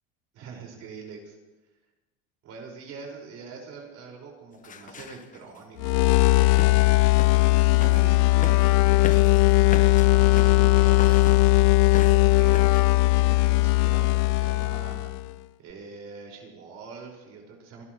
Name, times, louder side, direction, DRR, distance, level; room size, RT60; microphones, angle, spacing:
voice 1, 0.3-1.4 2.4-6.8 7.2-11.2 11.9-15.1 15.6-17.8, right 4 dB, 60° right, 0 dB, 5.6 m, -44 dB
sound 1, 4.6-5.6 6.6-6.9 7.2-7.5 7.8-8.1 8.4-10.6 10.9-11.6 11.9-12.3 12.5-12.9, left 6 dB, 25° left, 1.3 m, -39 dB
sound 2, 5.8-15.3, left 20 dB, 65° left, 0.4 m, -19 dB
30.0 x 12.5 x 3.2 m, 1.1 s
supercardioid pair, 100°, 29 cm